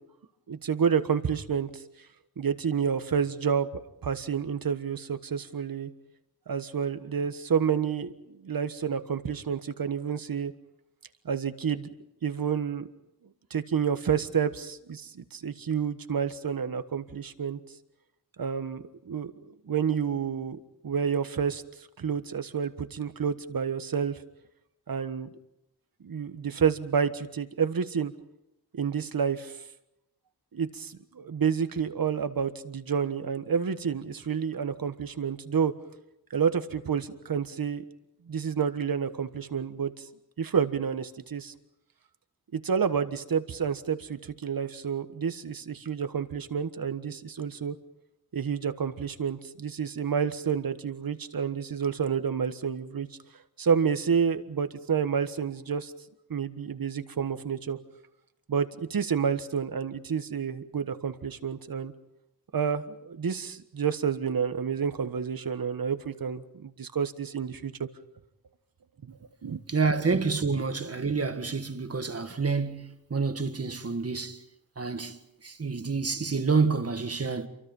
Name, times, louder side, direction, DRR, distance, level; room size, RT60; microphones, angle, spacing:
voice 1, 0.5-1.8 2.4-3.7 4.0-5.9 6.5-10.5 11.2-11.9 12.2-12.9 13.5-17.6 18.4-20.6 20.8-21.6 22.0-24.2 24.9-25.3 26.0-28.1 28.7-29.5 30.5-35.7 36.3-37.8 38.3-39.9 40.4-41.5 42.5-47.7 48.3-53.1 53.6-55.9 56.3-57.8 58.5-61.9 62.5-67.7 69.4-69.6, right 7 dB, 60° right, 1.4 m, -29 dB
voice 2, 69.7-74.4 74.8-75.2 75.4-77.5, right 4 dB, 40° right, 1.8 m, -28 dB
28.0 x 24.0 x 5.5 m
wide cardioid pair, 120°, 39 cm